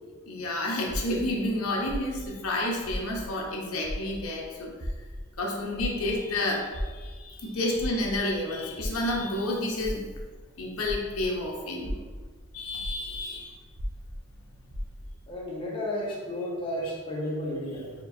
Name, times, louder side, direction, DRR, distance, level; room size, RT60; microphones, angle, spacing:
voice 1, 0.3-4.7 5.4-10.0 10.6-12.0 12.5-13.6, left 1 dB, 90° left, -1 dB, 0.8 m, -30 dB
sound 1, 0.9-3.5 3.8-11.4 11.7-15.3, equal, 80° right, 0.7 m, -37 dB
voice 2, 15.3-17.9, left 1 dB, 25° left, -4 dB, 0.9 m, -32 dB
4.5 x 3.5 x 2.5 m, 1.5 s
head